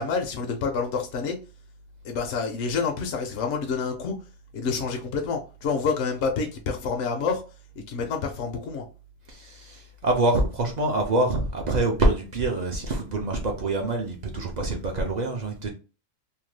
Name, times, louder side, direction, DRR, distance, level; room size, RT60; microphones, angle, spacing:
voice 1, 0.0-1.4 2.0-4.1 4.5-7.4 7.9-8.8, left 5 dB, 70° left, 0.8 m, -28 dB
voice 2, 9.3-15.7, right 2 dB, 60° right, 0.4 m, -25 dB
2.8 x 2.2 x 3.1 m
omnidirectional pair, 1.4 m